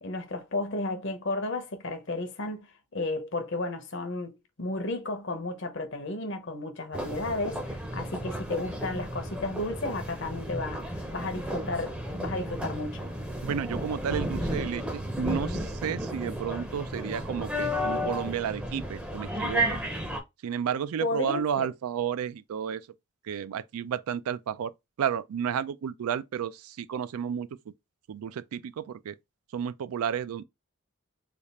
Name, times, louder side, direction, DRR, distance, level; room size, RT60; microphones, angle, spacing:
voice 1, 0.0-2.7 2.9-13.0 21.0-21.7, left 2 dB, 55° left, 0.8 m, -33 dB
sound 1, 6.9-20.2, equal, 5° right, 0.6 m, -33 dB
voice 2, 13.4-19.8 20.4-22.9 23.2-24.7 25.0-27.5 28.1-29.2 29.5-30.4, right 8 dB, 80° right, 0.3 m, -32 dB
3.4 x 2.4 x 4.1 m
head